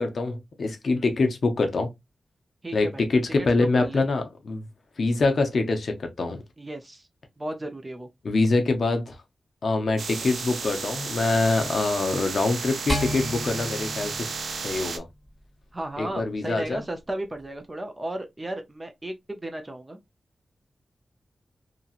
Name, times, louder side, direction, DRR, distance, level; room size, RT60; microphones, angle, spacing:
voice 1, 0.0-1.9 2.7-4.7 5.0-6.4 8.2-9.2 9.6-14.3 14.6-15.1 16.0-16.8, left 3 dB, 55° left, 0.7 m, -25 dB
voice 2, 2.6-3.1 3.4-3.5 3.8-4.1 6.6-7.1 7.4-8.1 15.7-20.0, right 1 dB, 20° right, 0.4 m, -34 dB
sound 1, 10.0-15.0, right 4 dB, 85° right, 0.4 m, -33 dB
sound 2, 12.9-15.3, left 1 dB, ahead, 1.9 m, -32 dB
2.8 x 2.7 x 2.4 m
wide cardioid pair, 160°, 0 cm